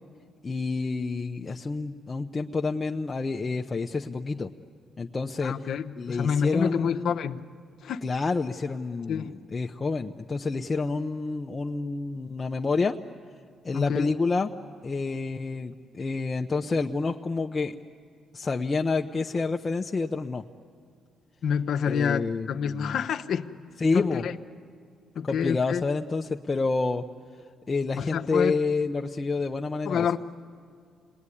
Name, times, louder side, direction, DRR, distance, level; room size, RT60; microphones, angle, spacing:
voice 1, 0.4-4.5 5.0-5.5 6.0-7.1 8.0-13.0 13.6-14.5 14.8-17.7 18.3-20.4 21.9-22.9 23.8-24.3 25.2-27.0 27.7-30.1, left 4 dB, 30° left, 2 dB, 0.8 m, -28 dB
voice 2, 5.4-7.4 7.8-8.0 9.1-9.3 13.7-14.1 21.4-23.5 23.9-24.4 25.1-25.8 28.0-28.6 29.8-30.2, left 7 dB, 65° left, 6 dB, 1.0 m, -28 dB
29.5 x 20.0 x 9.9 m, 2.2 s
cardioid pair, 90°, 0 cm